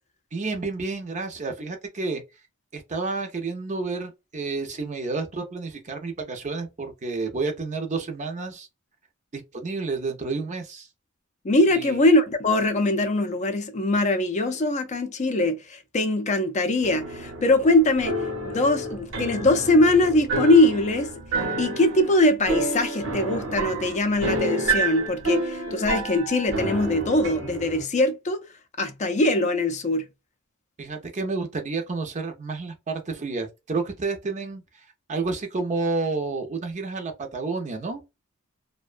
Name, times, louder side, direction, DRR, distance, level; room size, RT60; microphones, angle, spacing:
voice 1, 0.3-2.2 2.7-8.7 9.3-10.9 11.7-12.0 30.8-34.6 35.1-38.0, right 3 dB, 35° right, 0.6 m, -30 dB
voice 2, 11.4-18.2 18.4-21.1 21.6-28.4 28.8-30.0, left 2 dB, 35° left, 0.4 m, -22 dB
sound 1, 16.8-27.8, right 2 dB, 65° right, 0.8 m, -29 dB
2.5 x 2.2 x 2.4 m
head